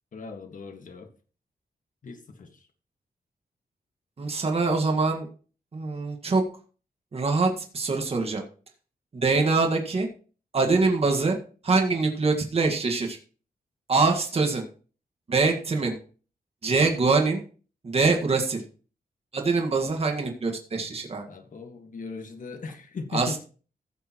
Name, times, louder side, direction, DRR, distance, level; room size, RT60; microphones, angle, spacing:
voice 1, 0.1-1.1 2.0-2.7 21.3-23.4, left 4 dB, 55° left, 6 dB, 1.8 m, -38 dB
voice 2, 4.2-5.3 5.7-6.4 7.1-8.4 9.1-10.1 10.5-11.4 11.6-13.2 13.9-14.6 15.3-16.0 16.6-17.4 17.8-18.6 19.3-21.2 23.1-23.4, right 3 dB, 40° right, 2 dB, 1.8 m, -24 dB
16.5 x 6.7 x 3.1 m, 0.38 s
wide cardioid pair, 135°, 16 cm